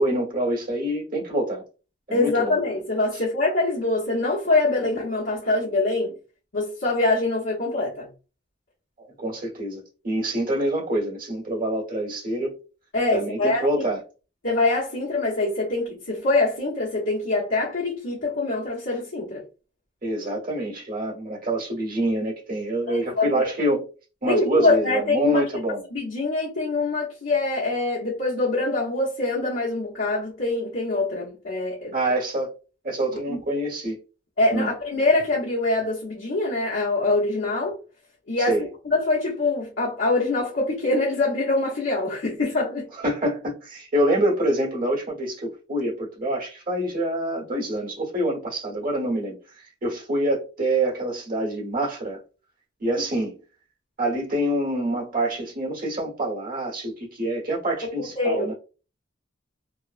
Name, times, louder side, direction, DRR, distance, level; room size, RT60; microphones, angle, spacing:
voice 1, 0.0-1.6 2.1-2.6 3.1-3.2 9.0-12.6 13.1-14.0 20.0-23.9 24.2-25.8 31.9-32.5 32.8-34.0 34.5-34.7 38.4-38.7 42.9-52.2 52.8-53.4 54.0-58.5, right 1 dB, 50° right, 1.3 m, -26 dB
voice 2, 2.1-6.1 6.5-8.1 12.9-13.7 14.4-19.4 22.9-23.4 24.3-25.4 25.9-31.9 33.3-33.4 34.4-37.8 38.3-38.5 38.8-42.9 58.0-58.5, left 2 dB, 90° left, 1.0 m, -24 dB
3.0 x 2.1 x 2.5 m
head